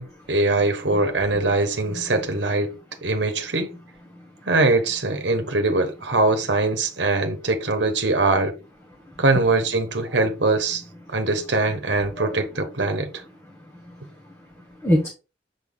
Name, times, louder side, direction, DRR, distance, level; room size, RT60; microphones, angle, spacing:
voice 1, 0.0-2.7 3.0-3.7 4.5-8.5 9.2-10.8 11.1-13.1, right 2 dB, 70° right, 1.2 m, -22 dB
voice 2, 13.5-15.1, equal, 15° left, 1.3 m, -28 dB
7.1 x 4.1 x 3.6 m
head